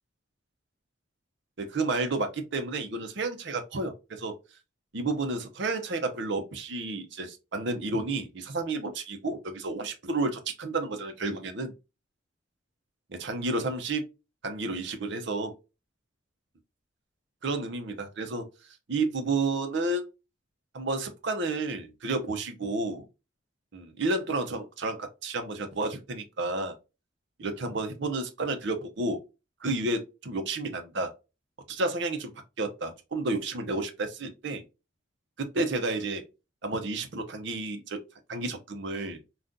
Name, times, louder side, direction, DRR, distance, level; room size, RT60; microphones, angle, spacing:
voice 1, 1.6-4.3 4.9-11.7 13.1-14.0 14.4-15.5 17.4-18.4 18.9-20.0 20.7-23.0 23.7-26.7 27.4-29.2 29.6-31.1 31.7-34.6 35.4-36.2 36.6-38.0 38.3-39.2, right 3 dB, 65° right, 0.7 m, -31 dB
3.6 x 2.4 x 2.6 m
head